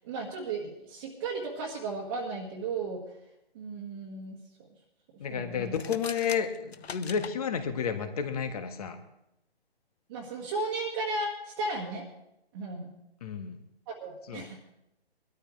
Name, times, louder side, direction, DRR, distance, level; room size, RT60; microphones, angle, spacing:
voice 1, 0.0-3.1 3.6-4.4 5.3-5.7 10.1-12.1 12.5-12.9 13.9-14.6, right 3 dB, 20° right, -3 dB, 1.7 m, -35 dB
voice 2, 5.2-9.0 13.2-13.6 14.3-14.5, left 7 dB, 35° left, 7 dB, 1.5 m, -31 dB
sound 1, 5.7-7.4, left 6 dB, 70° left, 0.9 m, -41 dB
21.5 x 13.0 x 3.2 m, 0.85 s
figure-of-eight pair, 150°, 32 cm